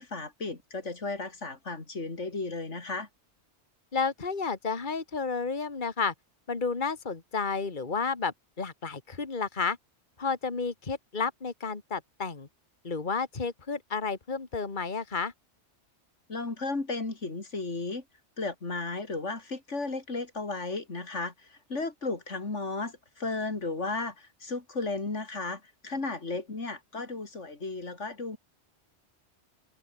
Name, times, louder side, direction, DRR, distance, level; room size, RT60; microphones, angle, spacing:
voice 1, 0.0-3.1 16.3-18.0 18.4-28.4, left 3 dB, 90° left, 3.6 m, -34 dB
voice 2, 3.9-6.1 6.5-9.8 10.2-12.5 12.8-15.3, left 5 dB, 45° left, 2.1 m, -31 dB
omnidirectional pair, 1.2 m